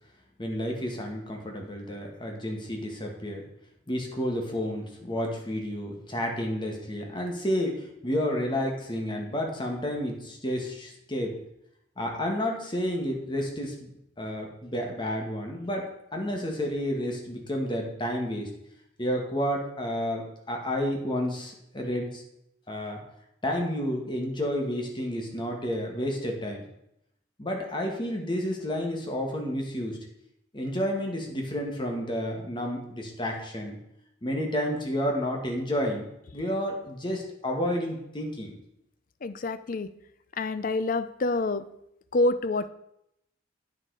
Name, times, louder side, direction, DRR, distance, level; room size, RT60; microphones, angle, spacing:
voice 1, 0.4-3.4 3.9-11.4 12.0-13.9 14.2-18.5 19.0-22.2 22.7-23.0 23.4-26.6 27.4-30.0 30.5-33.8 34.2-38.6, equal, 25° left, 1 dB, 1.7 m, -30 dB
voice 2, 39.2-39.9 40.4-41.6 42.1-42.7, left 2 dB, 45° left, 12 dB, 0.5 m, -27 dB
9.0 x 6.7 x 4.8 m, 0.79 s
head